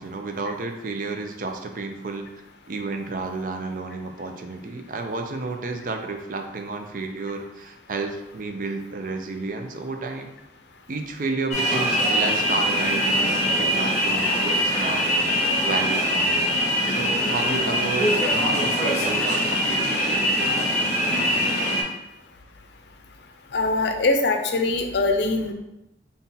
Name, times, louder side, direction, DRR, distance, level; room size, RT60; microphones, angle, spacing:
voice 1, 0.0-2.3 2.7-10.4 10.9-15.0 15.6-16.4 16.8-21.1, right 3 dB, 50° right, 5 dB, 0.4 m, -31 dB
sound 1, 11.5-21.8, equal, 40° left, 0.9 m, -23 dB
voice 2, 23.5-25.5, left 2 dB, 75° left, 5 dB, 0.5 m, -22 dB
4.1 x 2.3 x 3.8 m, 0.90 s
head